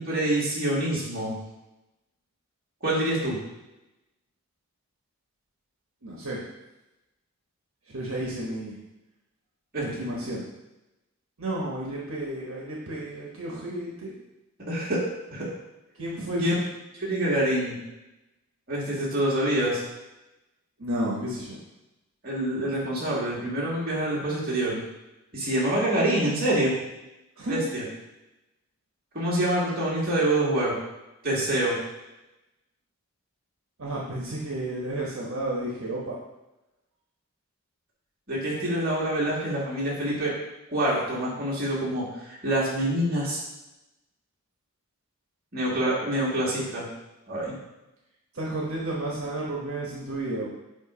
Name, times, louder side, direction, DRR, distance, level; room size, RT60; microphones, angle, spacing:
voice 1, 0.0-1.4 2.8-3.4 9.7-10.0 14.7-15.0 15.3-15.5 16.4-16.6 17.0-17.8 18.7-19.8 22.2-24.8 25.3-26.8 27.5-27.8 29.1-30.7 31.2-31.8 38.3-40.3 40.7-43.4 45.5-46.9 47.3-47.6, right 1 dB, 45° right, -6 dB, 2.1 m, -26 dB
voice 2, 6.0-6.4 7.9-8.8 9.8-10.5 11.4-14.1 16.0-16.5 20.8-21.5 27.4-27.6 33.8-36.1 48.3-50.5, right 1 dB, 80° right, -4 dB, 1.2 m, -32 dB
7.7 x 2.6 x 5.0 m, 0.97 s
head